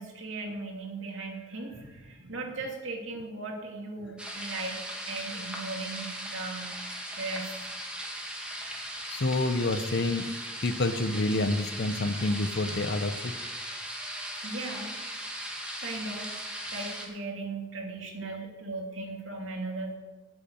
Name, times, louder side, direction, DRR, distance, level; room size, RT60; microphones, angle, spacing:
voice 1, 0.0-4.8 5.1-6.8 7.2-7.7 14.4-14.9 15.8-20.0, right 3 dB, 75° right, 1 dB, 2.7 m, -37 dB
sound 1, 4.2-17.1, right 1 dB, 5° right, 2.1 m, -38 dB
voice 2, 9.1-10.3 10.6-13.3, left 2 dB, 55° left, 11 dB, 0.8 m, -28 dB
8.7 x 8.6 x 9.0 m, 1.3 s
head